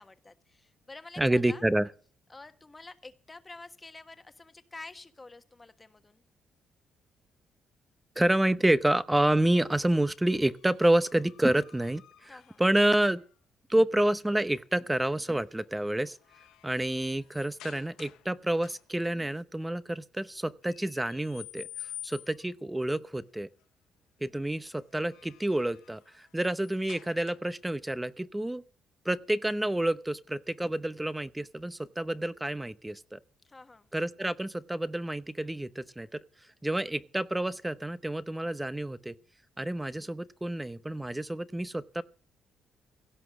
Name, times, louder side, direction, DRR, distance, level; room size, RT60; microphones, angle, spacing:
voice 1, 0.0-1.6 2.3-6.2 12.3-12.6 33.4-33.9, left 3 dB, 20° left, 1.4 m, -49 dB
voice 2, 1.2-1.9 8.2-12.3 12.6-13.2 13.7-16.2 16.6-21.7 22.0-23.5 24.2-28.6 29.0-33.2 33.9-36.2 36.6-39.1 39.6-42.0, right 1 dB, 10° right, 0.8 m, -28 dB
sound 1, 10.5-13.3 15.1-15.4 15.9-18.3 18.6-19.1 20.6-22.5 24.8-27.7, left 12 dB, 90° left, 0.7 m, -50 dB
17.0 x 5.9 x 8.5 m
cardioid pair, 90°, 0 cm